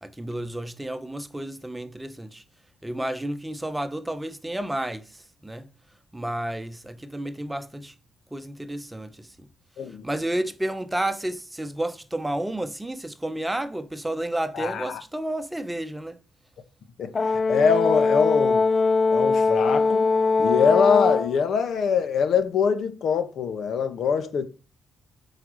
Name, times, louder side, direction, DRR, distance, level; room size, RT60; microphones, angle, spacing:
voice 1, 0.0-2.4 2.8-5.7 6.1-7.9 8.3-9.5 10.0-16.2, right 1 dB, 10° right, 1.0 m, -31 dB
voice 2, 9.8-10.1 14.5-15.0 17.0-17.1 17.5-18.7 19.1-20.1 20.4-24.4, left 6 dB, 65° left, 1.6 m, -23 dB
Brass instrument, 17.1-21.4, left 4 dB, 35° left, 0.3 m, -21 dB
8.3 x 4.9 x 6.4 m
cardioid pair, 100°, 0 cm